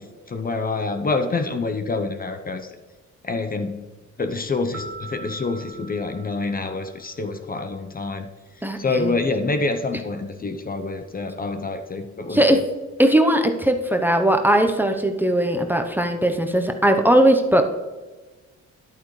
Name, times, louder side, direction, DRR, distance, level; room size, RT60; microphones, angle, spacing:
voice 1, 0.0-2.7 3.2-3.8 4.2-8.3 8.6-12.6, left 3 dB, 30° left, 7 dB, 0.8 m, -27 dB
sound 1, 4.7-7.5, right 3 dB, 45° right, 0.9 m, -42 dB
voice 2, 8.6-9.1 12.3-12.6 13.0-17.6, right 1 dB, 5° right, 5 dB, 0.8 m, -19 dB
11.0 x 8.7 x 3.2 m, 1.3 s
cardioid pair, 90°, 30 cm